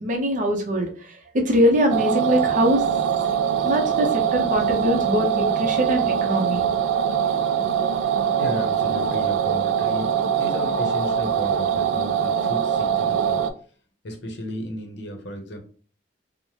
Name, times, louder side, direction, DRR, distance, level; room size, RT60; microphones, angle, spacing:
voice 1, 0.0-0.9 1.3-2.8 3.6-6.7, equal, 45° right, 2 dB, 0.6 m, -22 dB
sound 1, 1.9-13.5, right 8 dB, 75° right, 0.3 m, -23 dB
voice 2, 7.6-13.4 14.0-15.6, equal, 65° left, 4 dB, 0.7 m, -35 dB
3.1 x 2.1 x 2.8 m, 0.42 s
head